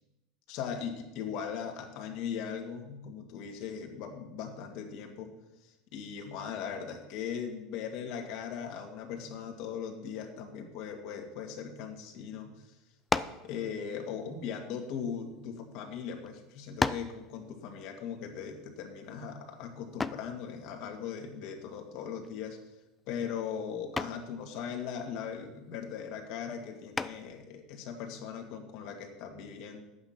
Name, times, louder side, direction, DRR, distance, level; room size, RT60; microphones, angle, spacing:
voice 1, 0.5-5.3 5.6-12.7 13.4-22.6 23.1-29.8, left 7 dB, 60° left, 3 dB, 2.1 m, -39 dB
sound 1, 13.1-13.5 14.4-15.6 16.3-16.4 16.8-17.2 20.0-20.3 22.2-22.6 23.0-23.3 24.0-24.3 26.9-27.4, left 3 dB, 15° left, 0.4 m, -33 dB
10.5 x 8.6 x 5.8 m, 0.96 s
supercardioid pair, 135°, 0 cm